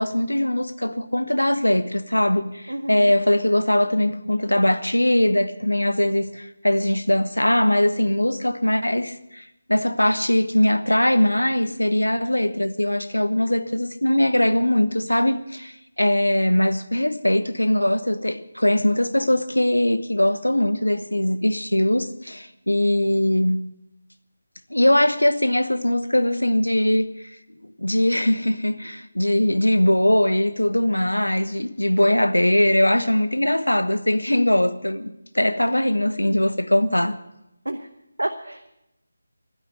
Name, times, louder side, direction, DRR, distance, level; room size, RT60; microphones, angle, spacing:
voice 1, 0.0-9.4 9.7-23.7 24.7-27.2 27.8-37.2, left 1 dB, 80° left, 1.0 m, -21 dB
voice 2, 2.7-3.1 37.6-37.9 38.2-38.7, right 1 dB, 75° right, 0.9 m, -29 dB
12.5 x 10.5 x 9.2 m
figure-of-eight pair, 160°, 0 cm